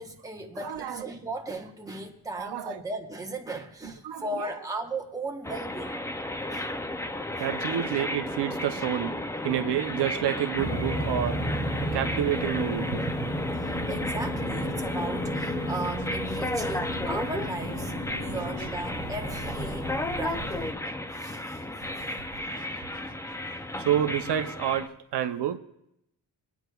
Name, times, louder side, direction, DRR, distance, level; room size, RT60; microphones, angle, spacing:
voice 1, 0.0-6.0 6.5-6.8 7.4-7.5 8.7-8.8 13.0-13.2 13.6-19.9 20.2-20.5 21.1-21.6, right 2 dB, 10° right, 0.9 m, -37 dB
voice 2, 0.6-1.1 2.3-2.8 4.0-4.5 6.4-6.5 7.4-11.4 11.8-13.2 18.3-18.4 22.5-23.4 23.8-25.6, right 10 dB, 70° right, 0.6 m, -29 dB
sound 1, 5.4-24.9, left 1 dB, 10° left, 0.3 m, -33 dB
sound 2, 10.6-20.7, equal, 25° left, 2.4 m, -34 dB
23.5 x 9.2 x 2.3 m
wide cardioid pair, 165°, 42 cm